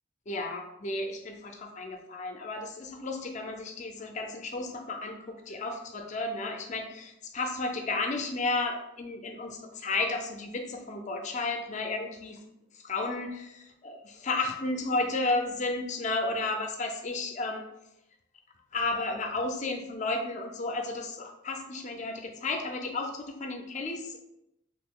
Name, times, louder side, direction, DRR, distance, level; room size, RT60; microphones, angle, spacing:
voice 1, 0.3-12.4 12.7-17.6 18.7-24.3, left 2 dB, 35° left, 4 dB, 0.4 m, -33 dB
3.0 x 2.7 x 3.6 m, 0.84 s
head